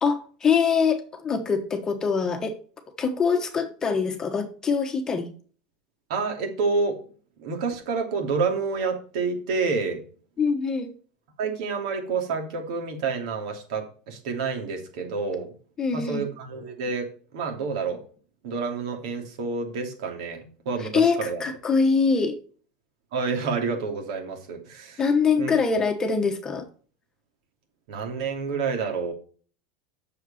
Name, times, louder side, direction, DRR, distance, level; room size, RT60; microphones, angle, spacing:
voice 1, 0.0-2.5 3.0-5.3 10.4-10.9 15.8-16.3 20.8-22.4 25.0-26.6, left 5 dB, 15° left, 6 dB, 1.1 m, -24 dB
voice 2, 6.1-7.0 7.4-10.0 11.4-15.5 15.9-18.0 18.4-21.4 23.1-25.0 25.3-25.5 27.9-29.1, right 4 dB, 70° right, 3 dB, 2.8 m, -28 dB
8.1 x 6.7 x 4.3 m, 0.41 s
supercardioid pair, 165°, 4 cm